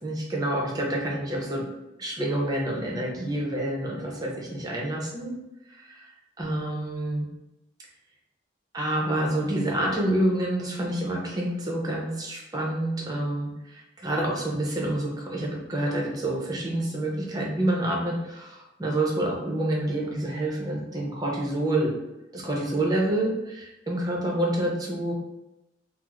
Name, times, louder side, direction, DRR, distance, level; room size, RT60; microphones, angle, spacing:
voice 1, 0.0-1.7 2.0-5.4 5.7-6.1 6.4-7.3 8.7-21.9 22.3-25.1, right 1 dB, 20° right, -2 dB, 0.6 m, -28 dB
3.0 x 2.0 x 3.6 m, 0.93 s
head